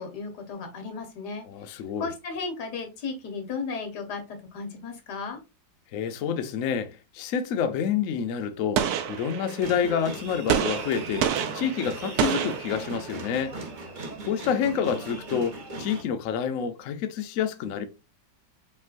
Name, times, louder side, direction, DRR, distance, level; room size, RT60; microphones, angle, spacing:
voice 1, 0.0-1.4 2.0-5.4, left 4 dB, 65° left, 1.5 m, -35 dB
voice 2, 1.5-2.1 5.9-13.6 14.3-17.9, left 7 dB, 90° left, 0.7 m, -28 dB
Gunshot gunfire, 8.8-9.8 10.5-13.3, right 9 dB, 75° right, 0.9 m, -28 dB
sound 1, 9.6-16.0, right 2 dB, 55° right, 0.5 m, -37 dB
5.5 x 3.0 x 2.5 m
omnidirectional pair, 2.1 m